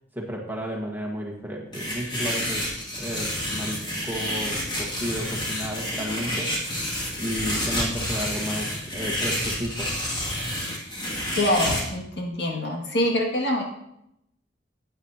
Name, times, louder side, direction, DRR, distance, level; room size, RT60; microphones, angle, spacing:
voice 1, 0.1-6.6 7.2-9.9, equal, 10° right, -1 dB, 1.5 m, -33 dB
sound 1, 1.7-11.8, equal, 25° left, 2.3 m, -29 dB
voice 2, 11.3-13.6, left 1 dB, 70° left, 0 dB, 2.1 m, -25 dB
15.0 x 9.0 x 2.8 m, 0.80 s
head